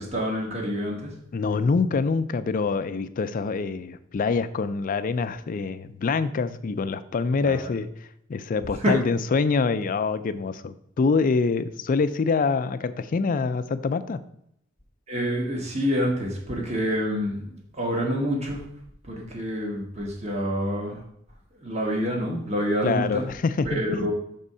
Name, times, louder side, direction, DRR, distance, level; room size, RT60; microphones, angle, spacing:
voice 1, 0.0-1.1 7.4-7.7 8.8-8.9 15.1-18.6 19.0-21.0 21.6-23.3 23.6-24.1, equal, 35° right, -1 dB, 1.2 m, -27 dB
voice 2, 1.3-7.9 8.3-14.2 22.8-24.1, left 4 dB, 45° left, 12 dB, 0.4 m, -25 dB
6.0 x 3.7 x 5.4 m, 0.72 s
head